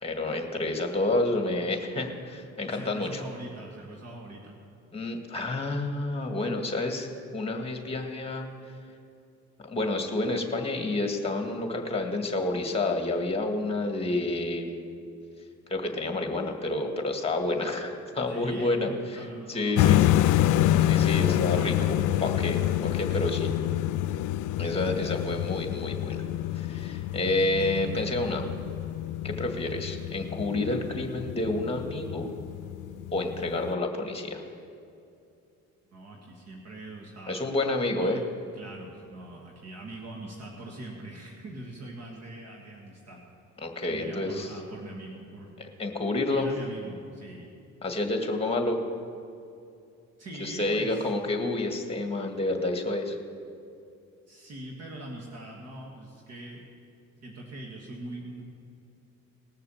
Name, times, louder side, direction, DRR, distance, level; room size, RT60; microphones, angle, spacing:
voice 1, 0.0-3.2 4.9-8.5 9.6-14.8 15.7-20.2 20.8-23.5 24.6-26.2 26.5-28.5 29.2-32.3 33.1-34.4 37.3-38.2 43.6-44.5 45.6-46.5 47.8-48.8 50.4-53.2, left 2 dB, 20° left, 4 dB, 1.8 m, -29 dB
voice 2, 2.6-4.5 18.3-20.4 21.1-21.8 23.3-23.5 35.9-37.5 38.0-38.2 38.5-43.2 43.9-45.6 46.3-47.5 50.2-51.1 54.3-56.6 57.2-58.4, right 1 dB, 55° right, -1 dB, 1.9 m, -42 dB
sound 1, 19.8-33.7, left 13 dB, 85° left, 0.5 m, -27 dB
19.0 x 6.7 x 7.1 m, 2.6 s
cardioid pair, 90°, 30 cm